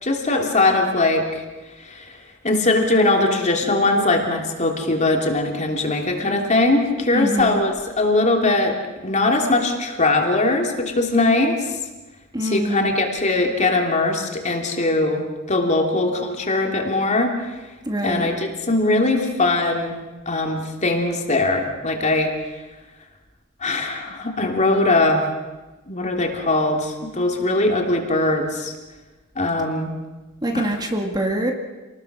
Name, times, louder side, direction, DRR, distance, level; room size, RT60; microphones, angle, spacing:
voice 1, 0.0-1.4 1.8-2.2 2.4-8.8 9.0-11.7 12.4-17.3 18.0-20.0 20.3-22.3 23.6-25.3 25.9-28.7 29.3-30.0 30.5-30.7, left 2 dB, 35° left, 2 dB, 3.1 m, -21 dB
voice 2, 7.1-7.6 12.3-12.9 17.9-18.3 30.4-31.5, right 1 dB, 20° right, 3 dB, 2.0 m, -24 dB
28.0 x 20.0 x 6.2 m, 1.2 s
head